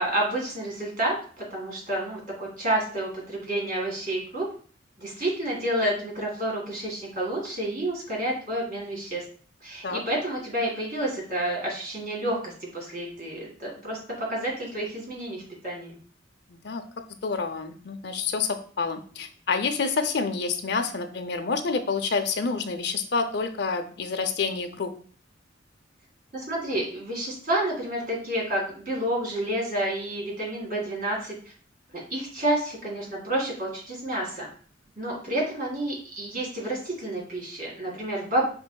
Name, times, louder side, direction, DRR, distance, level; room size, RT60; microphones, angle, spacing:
voice 1, 0.0-4.5 5.0-9.2 9.6-16.0 26.3-31.4 31.9-34.5 35.0-38.5, right 1 dB, 50° right, -2 dB, 2.0 m, -29 dB
voice 2, 16.5-16.8 17.2-24.9, left 4 dB, 65° left, 6 dB, 0.6 m, -28 dB
5.3 x 3.9 x 2.3 m, 0.43 s
head